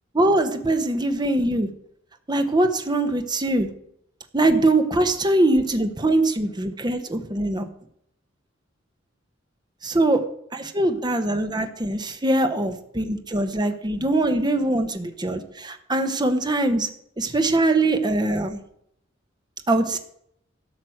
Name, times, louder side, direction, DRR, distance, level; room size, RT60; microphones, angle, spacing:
voice 1, 0.1-1.7 2.3-3.7 4.3-7.7 9.8-10.2 10.5-16.9 17.2-18.6 19.7-20.0, right 2 dB, 20° right, 8 dB, 1.0 m, -22 dB
12.0 x 6.2 x 7.8 m, 0.71 s
head